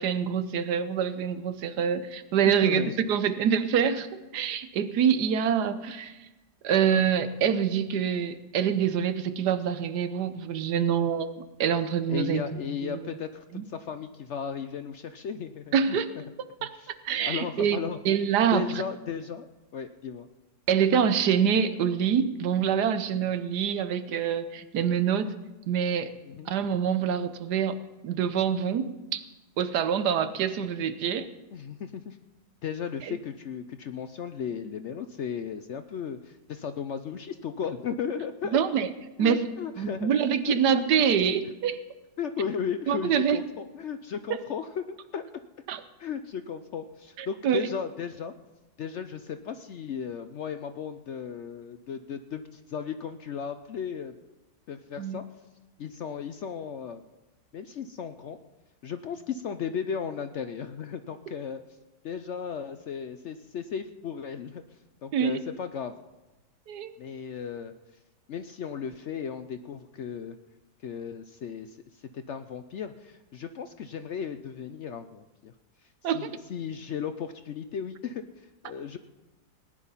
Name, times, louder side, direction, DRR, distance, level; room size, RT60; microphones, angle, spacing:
voice 1, 0.0-4.1 4.3-6.3 6.6-11.3 11.6-13.0 13.5-13.6 15.7-16.1 16.6-17.8 18.0-18.6 20.7-25.3 25.7-26.1 26.5-27.8 28.0-29.2 29.6-31.3 33.1-33.2 38.5-38.9 39.2-39.4 39.8-41.8 42.9-43.4 45.7-45.8 47.2-47.6 55.0-55.2 65.1-65.3 66.7-66.9 76.0-76.3, right 8 dB, 85° right, 11 dB, 1.4 m, -25 dB
voice 2, 2.4-2.9 12.1-16.0 16.7-16.9 17.2-18.0 18.5-19.5 19.7-20.3 26.2-26.5 31.5-32.2 32.6-38.6 39.2-40.1 40.5-40.6 42.2-45.2 46.0-48.3 48.8-54.1 54.7-55.2 55.8-57.0 57.5-58.4 58.8-61.6 62.0-64.6 65.0-65.9 67.0-67.7 68.3-70.4 70.8-75.5 76.0-79.0, left 7 dB, 65° left, 9 dB, 0.7 m, -35 dB
18.0 x 10.0 x 5.6 m, 1.1 s
omnidirectional pair, 1.7 m